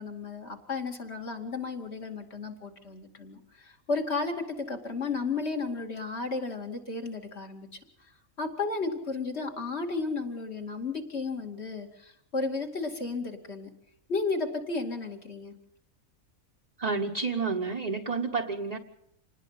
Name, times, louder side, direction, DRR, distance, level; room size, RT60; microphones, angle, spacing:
voice 1, 0.0-7.7 8.4-13.7 14.1-15.5, left 3 dB, 45° left, 3 dB, 2.8 m, -33 dB
voice 2, 16.8-18.8, right 4 dB, 30° right, 1 dB, 1.2 m, -30 dB
27.0 x 19.5 x 5.8 m, 0.73 s
omnidirectional pair, 1.5 m